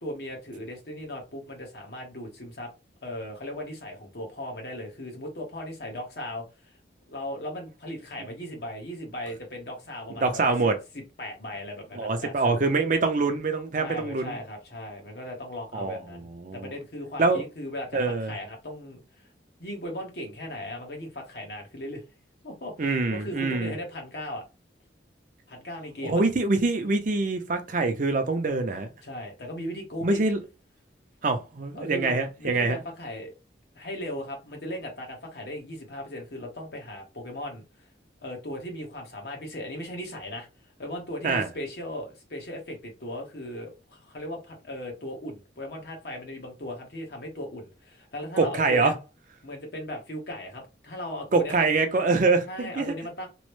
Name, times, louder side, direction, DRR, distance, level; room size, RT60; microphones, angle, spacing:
voice 1, 0.0-2.7 3.0-6.7 7.1-10.5 11.2-12.6 13.8-19.0 19.6-22.0 22.4-24.4 25.5-26.2 29.0-30.2 31.7-33.3 33.7-37.6 38.2-40.5 40.8-48.9 49.4-51.7 52.4-53.3, left 1 dB, 60° left, 1.1 m, -37 dB
voice 2, 10.2-10.8 11.9-14.4 15.7-16.7 17.2-17.4 17.9-18.3 22.8-23.7 26.0-28.9 30.0-30.4 31.2-32.8 41.2-41.5 48.4-48.9 51.3-53.0, right 3 dB, 45° right, 0.5 m, -25 dB
3.0 x 2.1 x 3.0 m
head